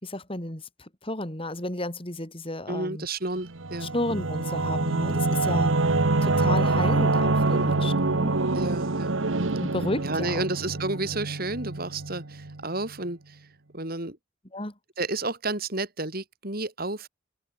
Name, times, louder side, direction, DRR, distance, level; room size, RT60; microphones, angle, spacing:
voice 1, 0.0-3.0 3.8-5.7 6.2-8.3 9.6-10.5 14.5-14.7, left 1 dB, 30° left, 4.2 m, -32 dB
voice 2, 2.7-3.9 8.5-9.2 10.0-13.5 13.7-14.2 15.0-17.1, right 2 dB, 50° right, 4.0 m, -31 dB
Singing / Musical instrument, 3.5-12.6, right 2 dB, 80° right, 1.3 m, -25 dB
head